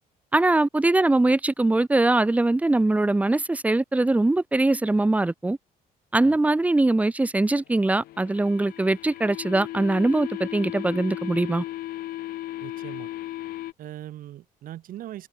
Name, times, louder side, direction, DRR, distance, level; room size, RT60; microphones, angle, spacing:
voice 1, 0.3-5.6 6.1-11.6, right 2 dB, 10° right, 1.7 m, -22 dB
sound 1, 7.7-13.7, left 15 dB, 75° left, 1.6 m, -36 dB
voice 2, 12.6-13.1 13.8-15.3, right 13 dB, 65° right, 5.3 m, -40 dB
cardioid pair, 155°, 16 cm